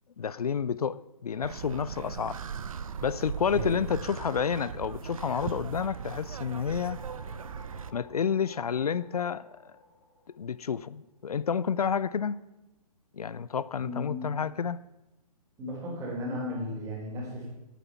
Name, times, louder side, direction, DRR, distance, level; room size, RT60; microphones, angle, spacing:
voice 1, 0.2-2.4 3.0-7.0 7.9-9.6 10.4-12.4 13.1-14.8, left 7 dB, 75° left, 0.4 m, -30 dB
sound 1, 1.4-7.9, right 7 dB, 65° right, 0.6 m, -38 dB
voice 2, 3.5-3.9 13.8-14.3 15.6-17.5, left 1 dB, 15° right, 3.9 m, -35 dB
sound 2, 6.5-11.1, left 3 dB, 55° left, 2.2 m, -54 dB
9.2 x 8.8 x 5.7 m
figure-of-eight pair, 130°, 19 cm